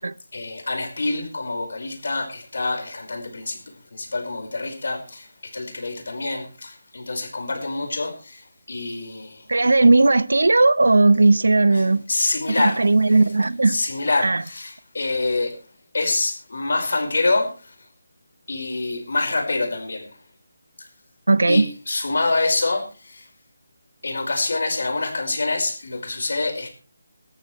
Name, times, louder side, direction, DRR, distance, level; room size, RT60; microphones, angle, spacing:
voice 1, 0.3-9.5 11.7-13.2 13.6-15.6 15.9-17.9 18.5-20.1 20.8-20.9 21.5-23.3 24.0-26.7, left 3 dB, 70° left, 5.0 m, -26 dB
voice 2, 9.5-12.0 12.6-13.8 14.2-14.4 21.3-21.7, right 3 dB, 90° right, 0.9 m, -16 dB
19.5 x 13.5 x 3.2 m
figure-of-eight pair, 170°, 0 cm